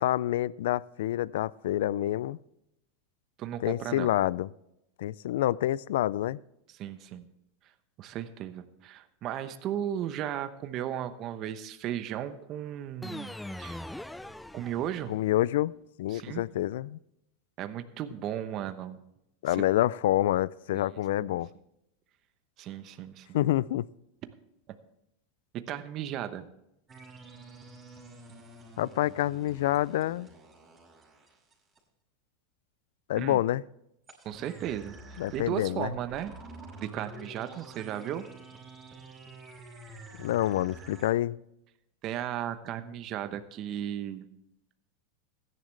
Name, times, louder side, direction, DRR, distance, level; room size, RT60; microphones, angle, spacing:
voice 1, 0.0-2.4 3.6-4.5 5.0-6.4 15.1-15.7 16.0-17.0 19.4-21.5 23.3-23.9 28.8-30.3 33.1-33.6 35.2-35.9 40.2-41.4, left 14 dB, 75° left, 22 dB, 0.4 m, -27 dB
voice 2, 3.4-4.1 6.7-7.3 8.0-13.9 14.5-15.1 16.1-16.4 17.6-19.0 19.5-19.6 20.7-20.9 22.6-23.4 25.5-26.4 33.2-33.4 34.2-36.3 36.8-38.3 42.0-44.3, right 11 dB, 45° right, 10 dB, 0.9 m, -35 dB
sound 1, 13.0-15.3, left 1 dB, 5° left, 0.4 m, -41 dB
sound 2, 26.9-31.8 34.1-41.1, right 3 dB, 20° right, 5.5 m, -48 dB
16.0 x 11.0 x 3.3 m, 0.82 s
hypercardioid pair, 120°, 0 cm